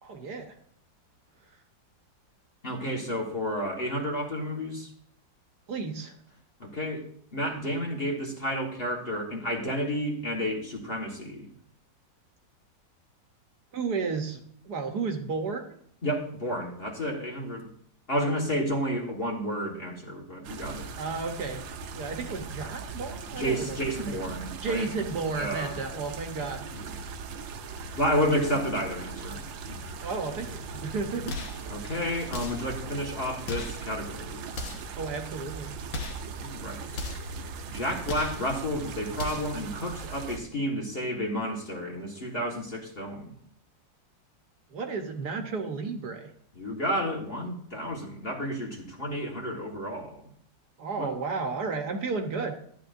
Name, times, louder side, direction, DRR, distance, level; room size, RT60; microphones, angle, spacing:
voice 1, 0.0-0.6 5.7-6.1 13.7-15.8 21.0-21.6 21.9-23.8 24.0-24.2 24.6-26.9 27.7-28.0 30.0-31.4 34.9-35.8 44.7-46.3 50.8-52.6, right 4 dB, 65° right, 4 dB, 1.5 m, -33 dB
voice 2, 2.6-4.9 6.6-11.5 16.0-17.7 18.1-20.9 23.3-24.9 25.4-25.8 26.7-27.1 28.0-30.0 31.7-34.5 36.4-37.0 37.7-43.4 46.5-50.3 51.0-51.1, equal, 30° left, 0 dB, 1.6 m, -31 dB
sound 1, 20.4-40.4, right 5 dB, 85° right, 1.5 m, -39 dB
sound 2, 31.3-31.6 32.3-32.7 33.4-33.8 34.5-34.9 35.9-36.3 36.9-37.3 38.0-38.4 39.1-39.6, left 3 dB, 85° left, 2.0 m, -36 dB
12.5 x 10.5 x 2.6 m, 0.64 s
omnidirectional pair, 2.0 m